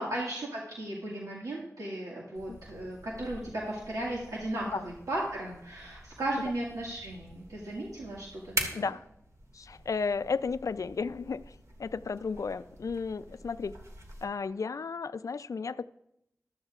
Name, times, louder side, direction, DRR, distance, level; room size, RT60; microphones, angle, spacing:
voice 1, 0.0-8.5, right 1 dB, 90° right, 1.9 m, -36 dB
sound 1, 2.3-14.2, right 1 dB, 60° right, 2.0 m, -44 dB
voice 2, 8.7-9.0 9.5-11.5 11.8-13.7 14.2-15.9, left 5 dB, 70° left, 0.4 m, -33 dB
14.5 x 12.5 x 2.4 m
wide cardioid pair, 55°, 6 cm